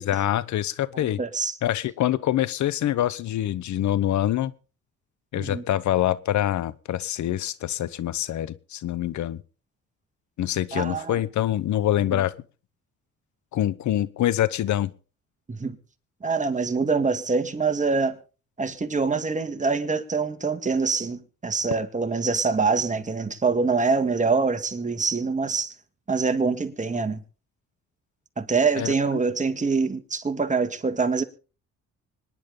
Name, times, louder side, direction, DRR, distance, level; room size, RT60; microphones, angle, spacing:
voice 1, 0.0-1.2 1.6-4.5 5.3-9.4 10.4-12.3 13.5-14.9 28.8-28.9, left 12 dB, 70° left, 0.9 m, -25 dB
voice 2, 0.9-1.5 5.4-5.6 10.7-11.2 12.1-12.2 15.5-15.8 16.2-18.2 18.6-25.7 26.1-27.2 28.4-31.2, right 4 dB, 25° right, 2.0 m, -25 dB
25.5 x 10.5 x 3.8 m
cardioid pair, 90°, 30 cm